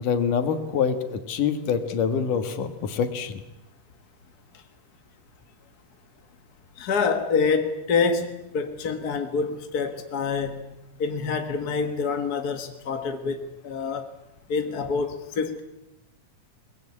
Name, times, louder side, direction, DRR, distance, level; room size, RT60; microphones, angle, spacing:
voice 1, 0.0-3.4, left 6 dB, 80° left, 9 dB, 3.2 m, -25 dB
voice 2, 6.8-10.7 11.0-14.0 14.5-15.6, left 5 dB, 45° left, 6 dB, 1.4 m, -26 dB
22.0 x 20.0 x 9.7 m, 0.92 s
omnidirectional pair, 3.7 m